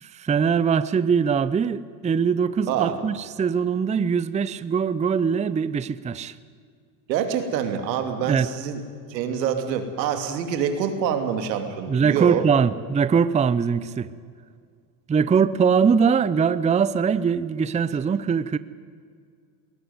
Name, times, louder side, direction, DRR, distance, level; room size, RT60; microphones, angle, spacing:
voice 1, 0.0-6.3 8.3-8.5 11.9-14.1 15.1-18.6, right 6 dB, 15° right, 0.6 m, -22 dB
voice 2, 7.1-8.8 9.1-12.5, right 8 dB, 85° right, 2.9 m, -26 dB
21.0 x 18.5 x 9.6 m
supercardioid pair, 100°, 49 cm